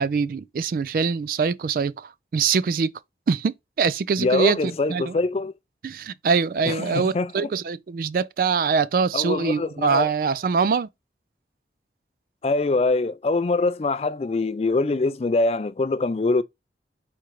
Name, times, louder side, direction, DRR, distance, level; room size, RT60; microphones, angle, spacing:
voice 1, 0.0-2.9 3.3-5.1 5.8-10.9, right 5 dB, 50° right, 0.3 m, -23 dB
voice 2, 4.2-5.5 6.7-7.5 9.1-10.1 12.4-16.4, left 3 dB, 35° left, 0.3 m, -24 dB
4.4 x 3.7 x 3.0 m
head